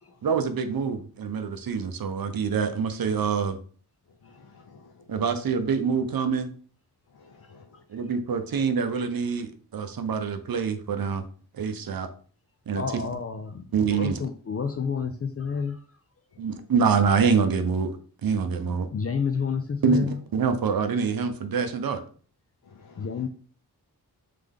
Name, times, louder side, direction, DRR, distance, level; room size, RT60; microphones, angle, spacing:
voice 1, 0.2-3.6 5.1-6.5 7.9-9.5 9.7-11.2 11.6-12.1 12.7-12.8 13.7-14.1 16.4-17.9 18.2-18.9 19.8-22.0, right 6 dB, 60° right, 9 dB, 0.7 m, -25 dB
voice 2, 4.2-5.4 7.1-7.8 22.7-23.1, left 4 dB, 70° left, 0 dB, 0.7 m, -52 dB
voice 3, 12.7-15.8 18.6-20.2 23.0-23.3, left 5 dB, 40° left, 7 dB, 0.4 m, -30 dB
3.6 x 3.3 x 3.6 m, 0.43 s
wide cardioid pair, 90°, 39 cm